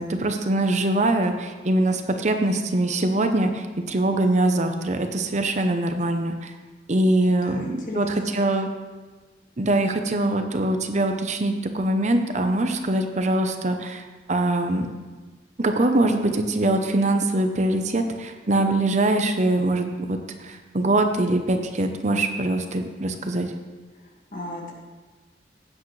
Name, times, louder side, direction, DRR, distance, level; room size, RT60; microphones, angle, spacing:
voice 1, 0.0-6.5 6.9-8.1 8.3-8.7 9.6-14.0 14.3-14.9 15.6-23.5, right 2 dB, 40° right, 6 dB, 0.8 m, -23 dB
voice 2, 7.3-8.4 23.9-24.7, left 1 dB, 50° left, -1 dB, 1.9 m, -37 dB
16.0 x 8.3 x 3.2 m, 1.4 s
head